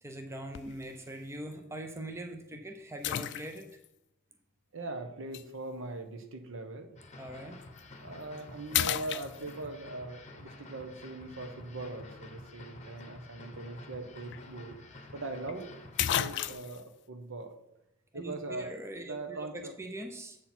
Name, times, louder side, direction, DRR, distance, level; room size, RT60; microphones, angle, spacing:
voice 1, 0.0-3.7 7.2-7.6 18.1-20.4, right 1 dB, 15° right, 4 dB, 0.6 m, -42 dB
sound 1, 0.5-0.9 1.5-1.6 3.0-3.9 5.3-5.5 7.6-7.8 8.2-8.4 8.7-9.8 13.9-14.0 14.3-14.4 15.5-15.6 16.0-16.8, left 11 dB, 55° left, 0.3 m, -32 dB
voice 2, 4.7-6.9 8.0-14.8 15.1-15.7 16.0-17.5 18.1-18.7 19.1-19.7, right 2 dB, 65° right, 6 dB, 1.0 m, -41 dB
sound 2, 7.0-16.5, left 2 dB, 35° left, 1.0 m, -50 dB
7.8 x 6.1 x 4.3 m, 0.87 s
head